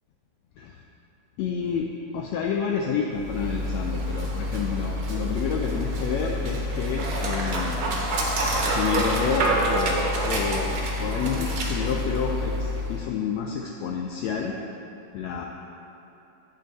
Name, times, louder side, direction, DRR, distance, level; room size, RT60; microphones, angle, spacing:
voice 1, 1.4-7.8 8.6-14.6 15.1-15.5, left 6 dB, 85° left, 1 dB, 1.5 m, -29 dB
Dog, 3.1-13.1, equal, 60° right, 1.7 m, -27 dB
8.6 x 8.3 x 4.0 m, 2.9 s
omnidirectional pair, 3.5 m